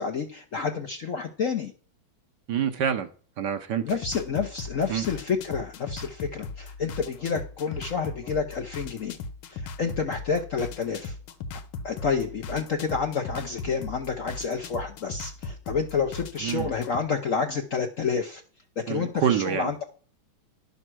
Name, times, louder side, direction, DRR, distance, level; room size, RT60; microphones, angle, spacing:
voice 1, 0.0-1.7 3.8-9.2 9.5-11.1 11.8-18.4 18.8-19.8, left 5 dB, 55° left, 5 dB, 0.9 m, -29 dB
voice 2, 2.5-3.1 3.4-4.0 4.9-5.0 16.4-16.7 18.9-19.7, right 8 dB, 65° right, 8 dB, 1.3 m, -27 dB
sound 1, 3.9-17.0, left 4 dB, 85° left, 1.7 m, -39 dB
11.0 x 5.6 x 6.1 m, 0.42 s
omnidirectional pair, 2.2 m